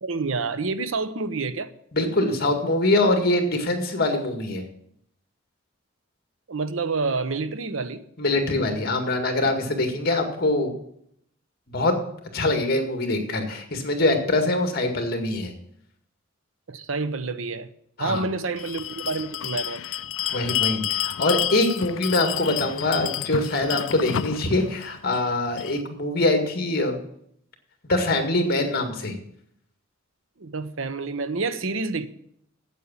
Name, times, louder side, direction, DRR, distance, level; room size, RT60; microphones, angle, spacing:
voice 1, 0.0-1.7 6.5-8.0 16.7-17.7 18.0-19.8 30.4-32.1, right 4 dB, 80° right, 0.8 m, -28 dB
voice 2, 1.9-4.6 8.2-10.7 11.7-12.0 12.3-15.5 18.0-18.2 20.3-27.0 27.8-29.2, left 2 dB, 50° left, 2.0 m, -23 dB
Bell, 18.6-25.8, left 11 dB, 75° left, 0.4 m, -30 dB
8.4 x 8.3 x 8.7 m
head